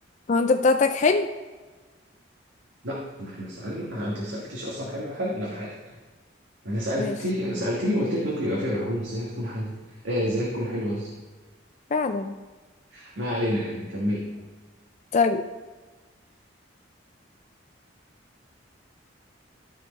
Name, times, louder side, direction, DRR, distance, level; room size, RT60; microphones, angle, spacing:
voice 1, 0.3-1.3 7.0-7.1 11.9-12.3 15.1-15.4, left 4 dB, 40° left, 7 dB, 0.3 m, -22 dB
voice 2, 2.8-5.9 6.6-9.7 10.0-11.1 12.9-14.2, equal, 80° right, -4 dB, 1.5 m, -29 dB
13.0 x 4.5 x 4.1 m, 1.3 s
head